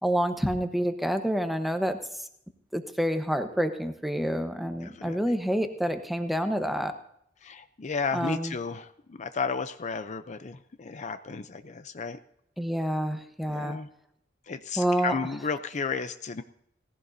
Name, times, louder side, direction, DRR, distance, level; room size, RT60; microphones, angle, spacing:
voice 1, 0.0-2.0 2.7-6.9 8.1-8.5 12.6-13.8 14.8-15.1, equal, ahead, 7 dB, 1.0 m, -28 dB
voice 2, 4.8-5.2 7.4-12.2 13.5-13.9 14.5-16.4, left 5 dB, 40° left, 11 dB, 0.5 m, -33 dB
18.0 x 15.0 x 2.7 m, 0.72 s
head